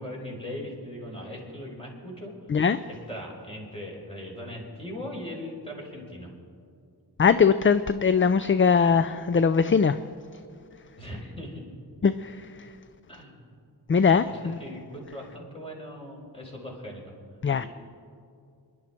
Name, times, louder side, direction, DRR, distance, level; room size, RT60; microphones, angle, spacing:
voice 1, 0.0-2.3 3.1-6.3 11.0-11.6 13.1-13.4 14.2-17.1 17.6-17.7, left 1 dB, 15° left, -2 dB, 4.5 m, -39 dB
voice 2, 7.2-10.0 12.0-12.5 13.9-14.6 17.4-17.7, left 6 dB, 30° left, 12 dB, 0.4 m, -21 dB
27.0 x 11.5 x 4.4 m, 2.4 s
wide cardioid pair, 75°, 40 cm